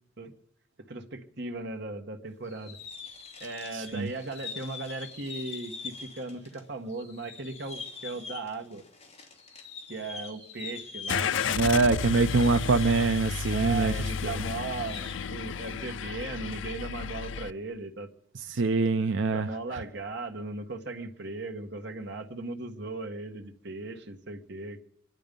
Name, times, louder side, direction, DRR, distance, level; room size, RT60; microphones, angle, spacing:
voice 1, 0.9-2.8 3.4-8.8 9.9-11.4 13.5-18.1 19.3-24.8, right 3 dB, 60° right, 4 dB, 1.5 m, -37 dB
Fireworks Crackle and Whistle A, 2.4-6.6 6.9-14.2 14.5-15.1, left 5 dB, 35° left, 2.8 m, -44 dB
voice 2, 3.7-4.1 11.5-14.4 18.3-19.8, right 3 dB, 80° right, 8 dB, 0.6 m, -25 dB
Car / Engine starting, 11.1-17.5, left 6 dB, 80° left, 0.5 m, -32 dB
25.0 x 10.5 x 5.3 m, 0.73 s
head